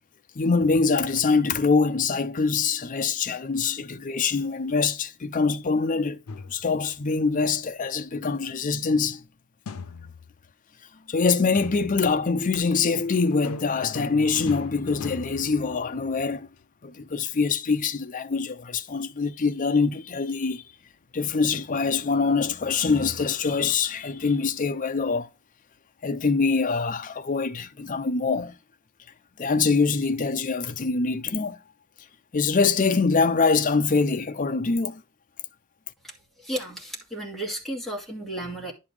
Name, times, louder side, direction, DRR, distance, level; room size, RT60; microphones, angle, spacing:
voice 1, 0.4-6.2 6.5-9.2 11.1-16.5 16.8-20.6 21.1-25.3 26.0-28.6 29.4-31.6 32.3-35.0, left 4 dB, 40° left, 0.5 m, -24 dB
sound 1, 6.3-6.9 9.7-10.5 11.5-12.3 13.3-16.3, left 4 dB, 90° left, 0.5 m, -39 dB
voice 2, 36.4-38.7, right 1 dB, ahead, 2.2 m, -33 dB
10.5 x 5.4 x 3.3 m
head